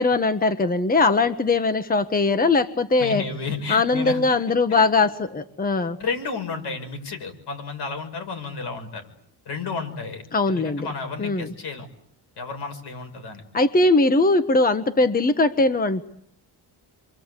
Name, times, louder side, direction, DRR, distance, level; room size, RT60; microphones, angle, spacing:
voice 1, 0.0-3.2 3.7-6.0 10.3-10.9 11.2-11.5 13.5-16.0, left 3 dB, 20° left, 10 dB, 1.2 m, -20 dB
voice 2, 3.0-4.4 4.7-4.8 6.0-9.1 9.5-11.9 12.4-13.4, left 4 dB, 70° left, 6 dB, 6.3 m, -32 dB
29.0 x 24.0 x 8.3 m, 0.70 s
cardioid pair, 135°, 41 cm